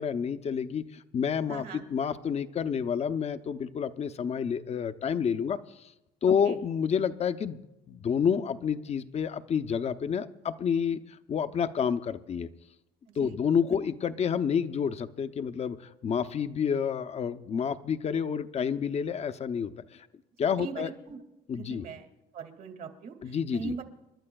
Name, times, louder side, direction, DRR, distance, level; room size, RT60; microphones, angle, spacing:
voice 1, 0.0-5.6 6.2-7.6 7.9-12.5 13.2-19.7 20.4-20.9 21.5-21.9 23.2-23.7, left 7 dB, 40° left, 11 dB, 0.7 m, -29 dB
voice 2, 1.5-1.8 6.4-6.6 13.2-13.4 13.6-13.8 20.6-21.2 21.5-22.1 22.3-23.1 23.5-23.8, right 6 dB, 60° right, 4 dB, 2.1 m, -39 dB
29.5 x 12.0 x 2.3 m, 0.92 s
cardioid pair, 110°, 17 cm